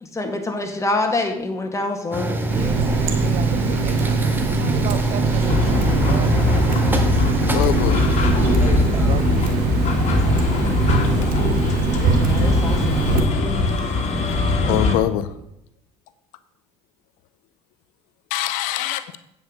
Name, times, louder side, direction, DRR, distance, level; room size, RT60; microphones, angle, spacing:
voice 1, 0.0-2.3 12.1-13.2, left 2 dB, 20° left, 4 dB, 2.0 m, -26 dB
sound 1, 2.1-9.7, right 1 dB, 15° right, 1.7 m, -25 dB
Water tap faucet, 2.5-13.2, right 5 dB, 70° right, 1.3 m, -23 dB
voice 2, 3.2-6.4 8.9-9.4, right 9 dB, 55° right, 12 dB, 0.8 m, -34 dB
sound 2, 5.5-15.0, left 3 dB, 55° left, 1.9 m, -21 dB
voice 3, 7.4-8.1 10.9-11.4 14.7-15.3 18.3-19.0, left 13 dB, 70° left, 13 dB, 0.6 m, -24 dB
8.8 x 5.5 x 6.8 m, 0.78 s
hypercardioid pair, 65°, 14 cm